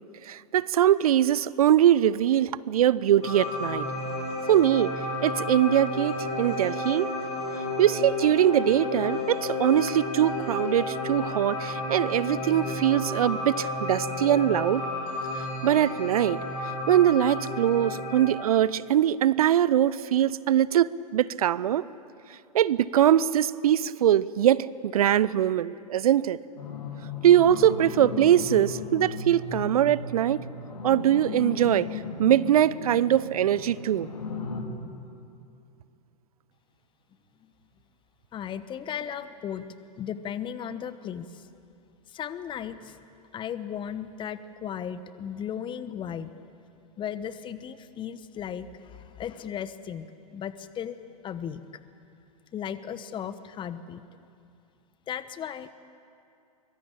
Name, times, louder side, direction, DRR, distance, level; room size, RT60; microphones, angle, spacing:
voice 1, 0.2-3.9 4.5-5.0 5.2-7.1 7.8-14.9 15.4-21.8 22.5-26.4 27.2-30.4 30.8-34.1, right 11 dB, 60° right, 20 dB, 0.6 m, -22 dB
sound 1, 3.2-18.3, left 2 dB, 45° left, 4.4 m, -32 dB
sound 2, 26.6-34.6, left 3 dB, 70° left, 3.2 m, -36 dB
voice 2, 38.3-39.6 40.0-41.4 42.1-43.0 43.3-46.3 47.0-51.0 51.2-51.6 52.5-54.0 55.1-55.7, left 9 dB, 25° left, 13 dB, 1.1 m, -36 dB
24.0 x 23.0 x 8.7 m, 2.5 s
figure-of-eight pair, 100°, 21 cm